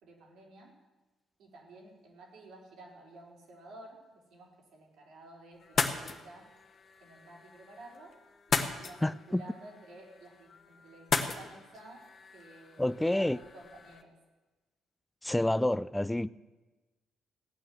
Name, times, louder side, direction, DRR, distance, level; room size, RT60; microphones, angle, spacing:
voice 1, 0.0-0.8 1.4-6.5 7.0-8.2 8.5-12.0 12.3-14.1, right 2 dB, 80° right, 4.4 m, -52 dB
sound 1, 5.6-14.0, left 5 dB, 50° left, 1.4 m, -37 dB
voice 2, 9.0-9.4 12.8-13.4 15.2-16.3, left 1 dB, 10° left, 0.4 m, -28 dB
16.5 x 9.3 x 7.8 m
cardioid pair, 90°, 0 cm